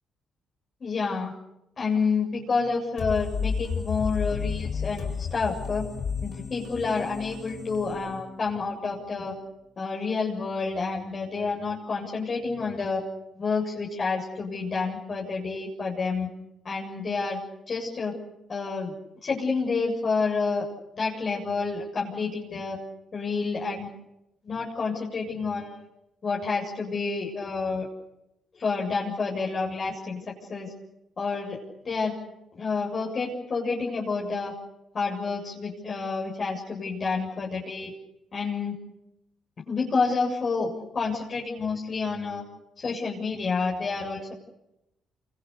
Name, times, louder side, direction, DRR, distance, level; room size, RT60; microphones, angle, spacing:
voice 1, 0.8-1.3 1.8-5.9 6.2-9.3 9.8-13.0 13.4-16.3 16.6-17.4 17.7-18.1 18.5-18.9 19.2-20.7 21.0-22.8 23.1-23.9 24.4-25.9 26.2-27.9 28.5-30.2 30.5-30.7 31.2-31.6 31.8-32.1 32.5-34.5 34.9-37.9 38.3-38.8 39.7-42.4 42.8-44.3, left 4 dB, 40° left, -2 dB, 7.4 m, -29 dB
sound 1, 3.0-8.6, left 6 dB, 60° left, 5.6 m, -32 dB
28.5 x 26.5 x 6.8 m, 0.88 s
cardioid pair, 90°, 0 cm